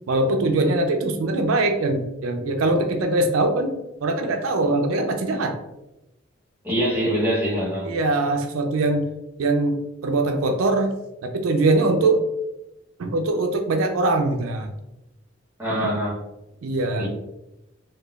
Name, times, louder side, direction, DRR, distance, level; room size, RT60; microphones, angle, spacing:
voice 1, 0.1-5.6 7.8-9.1 9.4-10.9 11.2-12.2 13.0-14.7 16.6-17.1, right 2 dB, 90° right, 5 dB, 0.4 m, -22 dB
voice 2, 6.6-7.9 15.6-16.2 17.0-17.1, equal, 10° right, -7 dB, 0.8 m, -24 dB
3.7 x 2.2 x 2.3 m, 0.93 s
head